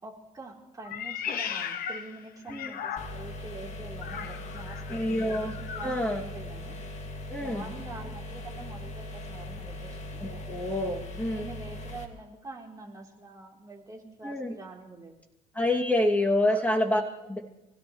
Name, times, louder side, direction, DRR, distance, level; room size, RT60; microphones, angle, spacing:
voice 1, 0.0-6.8 7.4-10.2 11.2-15.2 16.4-16.6, right 3 dB, 20° right, -2 dB, 3.7 m, -45 dB
Meow, 0.8-3.4 4.0-6.0, left 8 dB, 60° left, 1.0 m, -37 dB
sound 1, 3.0-12.1, left 1 dB, 40° left, 2.3 m, -40 dB
voice 2, 4.9-5.6 5.8-6.2 7.3-7.7 10.2-11.5 14.2-14.5 15.5-17.4, left 1 dB, 10° left, -1 dB, 2.5 m, -27 dB
25.0 x 16.5 x 3.2 m, 0.98 s
cardioid pair, 110°, 17 cm